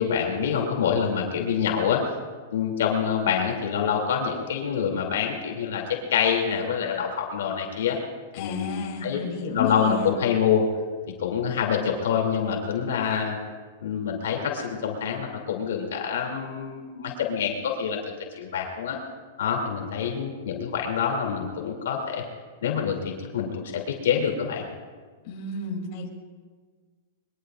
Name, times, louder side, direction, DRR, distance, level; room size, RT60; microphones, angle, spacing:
voice 1, 0.0-2.0 2.5-8.0 8.4-9.2 9.5-10.6 11.2-13.4 13.8-19.0 19.4-22.2 22.6-24.6, left 7 dB, 85° left, 1 dB, 2.8 m, -26 dB
voice 2, 8.3-10.1 25.2-26.1, left 4 dB, 45° left, -1 dB, 3.1 m, -32 dB
22.5 x 22.0 x 2.5 m, 1.5 s
supercardioid pair, 145°, 0 cm